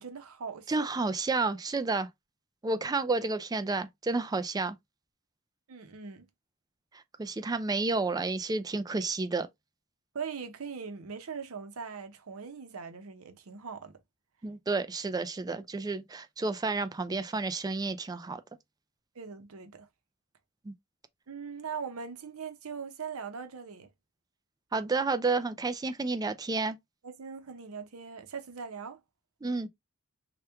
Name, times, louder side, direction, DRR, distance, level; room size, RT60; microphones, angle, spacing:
voice 1, 0.0-0.9 5.7-6.3 10.1-14.0 19.1-19.9 21.3-23.9 27.0-29.0, right 6 dB, 85° right, 0.7 m, -41 dB
voice 2, 0.7-2.1 2.6-4.8 7.2-9.5 14.4-18.4 20.7-20.8 24.7-26.8 29.4-29.7, right 3 dB, 20° right, 0.3 m, -30 dB
3.0 x 2.2 x 3.4 m
head